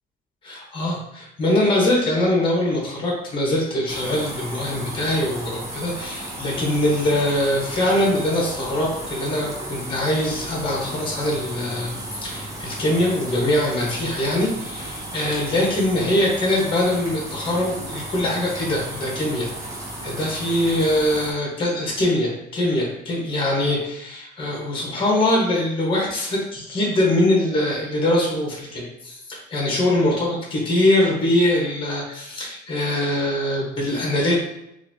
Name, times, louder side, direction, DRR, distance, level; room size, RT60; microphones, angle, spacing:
voice 1, 0.4-19.5 20.0-34.4, left 1 dB, 30° left, -3 dB, 1.3 m, -22 dB
sound 1, 3.9-21.3, right 1 dB, 20° right, 0.9 m, -34 dB
3.9 x 2.7 x 2.8 m, 0.84 s
cardioid pair, 110°, 17 cm